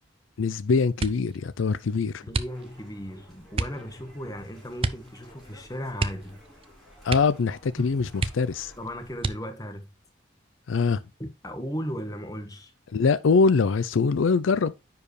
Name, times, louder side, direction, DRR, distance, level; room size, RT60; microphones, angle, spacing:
voice 1, 0.4-2.2 7.0-8.7 10.7-11.0 12.9-14.7, left 4 dB, 85° left, 0.5 m, -23 dB
sound 1, 0.9-1.4 2.3-2.9 3.5-3.8 4.8-5.1 5.4-5.5 5.9-6.7 7.0-7.5 7.8-7.9 8.2-8.7 9.2-9.7 10.4-11.0 11.4-11.8, right 3 dB, 30° right, 0.5 m, -31 dB
voice 2, 2.2-6.4 7.8-7.9 8.8-9.9 11.2-12.7, equal, 20° left, 1.3 m, -36 dB
sound 2, 2.5-9.2, equal, ahead, 4.0 m, -53 dB
10.0 x 4.7 x 3.2 m
head